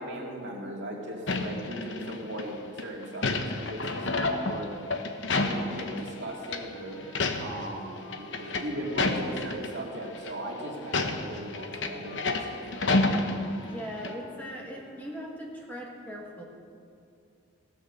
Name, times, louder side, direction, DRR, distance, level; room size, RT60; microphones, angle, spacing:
voice 1, 0.0-4.7 5.4-7.0 7.4-12.7, right 1 dB, 60° right, -2 dB, 2.2 m, -38 dB
sound 1, 1.3-2.4 2.8-6.2 6.4-6.6 7.0-7.7 8.0-9.7 10.1-10.3 10.8-13.8 14.0-14.1, left 2 dB, 60° left, 0.9 m, -29 dB
sound 2, 5.6-15.2, left 1 dB, 85° left, 3.4 m, -49 dB
voice 2, 13.6-16.4, equal, 10° left, -1 dB, 1.3 m, -39 dB
16.5 x 6.6 x 6.6 m, 2.5 s
head